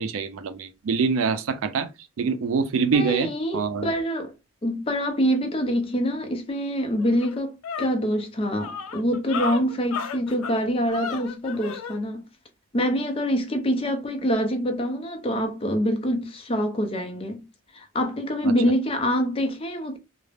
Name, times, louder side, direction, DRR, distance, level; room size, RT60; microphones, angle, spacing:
voice 1, 0.0-1.9 2.2-3.9 18.4-18.5, right 5 dB, 75° right, 0.4 m, -25 dB
voice 2, 2.9-4.3 4.6-7.5 7.8-12.3 12.7-17.4 17.7-20.0, equal, 25° left, 0.5 m, -25 dB
sound 1, 6.5-6.6 7.0-12.0, left 6 dB, 85° left, 0.4 m, -34 dB
2.4 x 2.0 x 3.2 m
head